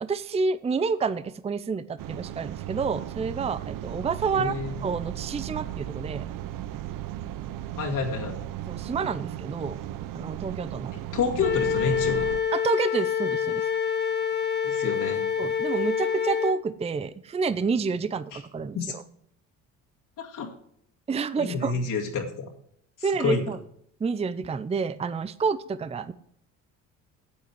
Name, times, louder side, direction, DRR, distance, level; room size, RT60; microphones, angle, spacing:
voice 1, 0.0-6.3 8.7-9.8 10.1-10.9 12.5-13.7 15.4-19.0 21.1-21.7 23.0-23.6 24.0-26.1, right 5 dB, 20° right, 15 dB, 0.5 m, -29 dB
sound 1, 2.0-12.4, right 12 dB, 65° right, 0.7 m, -36 dB
voice 2, 4.3-4.7 7.8-8.4 10.9-12.3 14.6-15.2 18.3-18.4 18.7-18.9 20.2-20.5 21.4-22.5 23.0-23.4, left 5 dB, 60° left, -1 dB, 2.2 m, -29 dB
Wind instrument woodwind instrument, 11.4-16.6, left 7 dB, 30° left, 1.3 m, -26 dB
9.3 x 8.4 x 4.6 m, 0.69 s
supercardioid pair, 75°, 36 cm